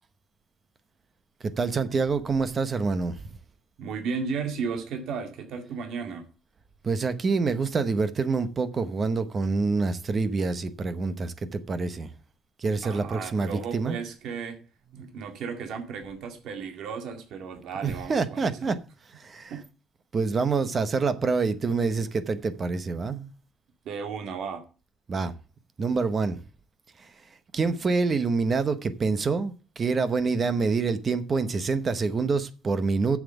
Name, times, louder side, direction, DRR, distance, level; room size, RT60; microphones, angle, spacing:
voice 1, 1.4-3.2 6.8-12.1 12.6-14.0 15.0-15.1 17.8-18.8 19.2-19.5 20.1-23.3 25.1-25.3 25.8-26.4 27.5-33.2, right 4 dB, 25° right, 0.8 m, -26 dB
voice 2, 3.8-6.3 12.8-14.6 14.9-18.6 19.5-19.6 23.9-24.7, right 5 dB, 65° right, 2.0 m, -34 dB
7.3 x 7.2 x 7.8 m
cardioid pair, 175°, 0 cm